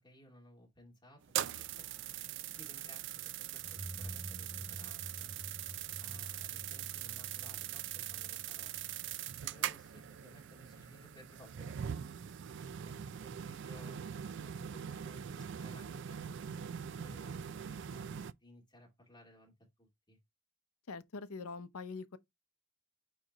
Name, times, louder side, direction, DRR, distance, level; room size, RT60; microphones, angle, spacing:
voice 1, 0.0-3.2 3.5-5.3 6.0-8.7 9.4-11.9 12.2-12.4 12.8-16.4 16.9-18.1 18.4-19.5 19.8-20.2, left 1 dB, 20° left, 2.6 m, -59 dB
sound 1, 1.2-18.3, right 10 dB, 55° right, 0.3 m, -42 dB
sound 2, 3.6-10.2, right 1 dB, 15° right, 0.6 m, -50 dB
voice 2, 20.9-22.2, left 4 dB, 80° left, 0.7 m, -43 dB
8.7 x 3.2 x 3.8 m
head